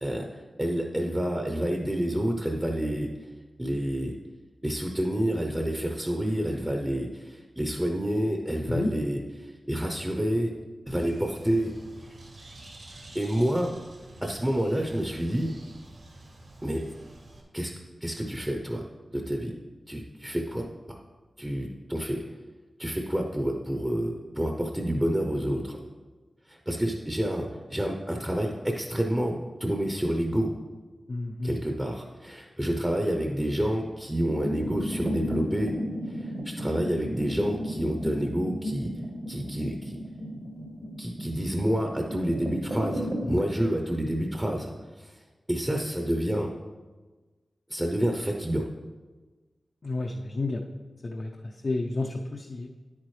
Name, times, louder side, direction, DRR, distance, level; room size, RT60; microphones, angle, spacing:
voice 1, 0.0-3.1 3.6-4.1 4.6-10.5 10.9-11.7 12.0-12.2 13.1-13.7 14.2-15.6 16.6-16.8 17.5-17.7 18.0-18.8 19.1-19.5 19.9-21.0 21.4-22.2 22.8-25.8 26.5-30.5 31.4-35.7 36.1-38.9 39.3-40.0 41.0-44.7 45.0-45.2 45.5-46.5 47.7-48.7, right 1 dB, 10° right, 2 dB, 0.8 m, -28 dB
Bird, 10.9-17.4, right 2 dB, 70° right, 2.3 m, -48 dB
voice 2, 31.1-31.6 43.3-43.4 49.8-50.6 51.0-52.7, left 2 dB, 50° left, 0 dB, 0.6 m, -31 dB
sound 1, 34.0-43.3, equal, 50° right, 1.3 m, -34 dB
9.7 x 8.6 x 3.2 m, 1.3 s
wide cardioid pair, 95°, 0 cm